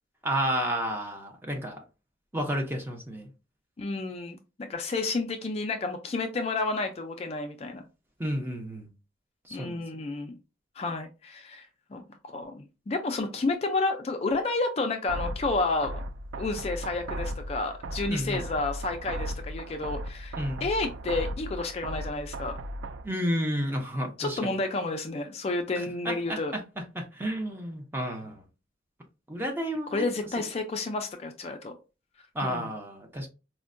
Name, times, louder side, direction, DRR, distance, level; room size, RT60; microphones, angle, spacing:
voice 1, 0.2-1.8 2.3-3.3 8.2-8.9 9.5-9.8 18.1-18.5 20.4-20.7 23.0-24.5 25.8-26.6 26.9-28.4 29.3-30.0 32.3-33.3, equal, 10° right, 0.6 m, -31 dB
voice 2, 3.8-7.9 9.5-10.3 10.8-16.0 16.4-22.6 24.2-26.6 29.9-31.7 32.4-32.7, left 3 dB, 35° left, 0.3 m, -31 dB
sound 1, 15.1-23.1, right 1 dB, 85° right, 0.4 m, -36 dB
4.3 x 2.1 x 2.5 m
head